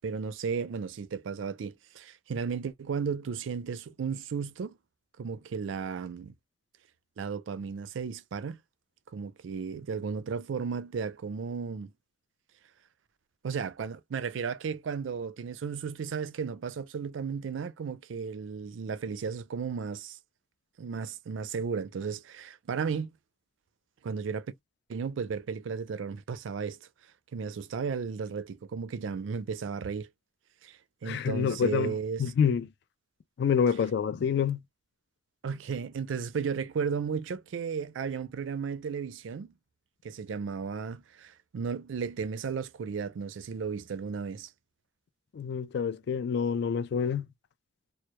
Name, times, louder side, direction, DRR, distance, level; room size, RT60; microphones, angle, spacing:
voice 1, 0.0-4.8 5.2-6.3 7.2-8.6 9.1-11.9 13.4-20.2 20.8-23.1 24.0-24.5 24.9-26.8 27.3-30.1 30.6-32.2 35.4-39.5 40.0-44.5, right 6 dB, 80° right, 0.4 m, -34 dB
voice 2, 31.0-32.7 33.4-34.6 45.3-47.3, left 7 dB, 60° left, 0.3 m, -27 dB
2.1 x 2.1 x 2.8 m
head